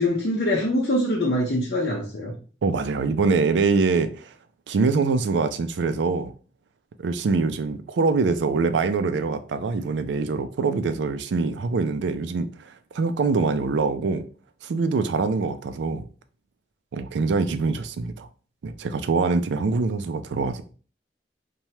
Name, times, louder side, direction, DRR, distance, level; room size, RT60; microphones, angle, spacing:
voice 1, 0.0-2.3, left 1 dB, 60° left, 0.6 m, -24 dB
voice 2, 2.6-4.3 4.7-6.3 7.0-12.5 12.9-14.2 14.6-16.1 16.9-18.3 18.6-20.6, right 4 dB, 85° right, 0.4 m, -24 dB
3.1 x 2.2 x 2.7 m
head